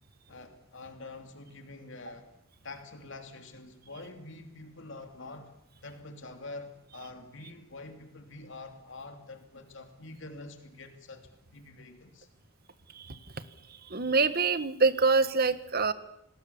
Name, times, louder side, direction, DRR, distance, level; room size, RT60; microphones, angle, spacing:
voice 1, 0.3-2.3 2.6-5.5 5.8-12.3, left 2 dB, 60° left, 2.9 m, -46 dB
voice 2, 13.7-15.9, right 4 dB, 45° right, 1.4 m, -26 dB
28.5 x 20.0 x 7.2 m
head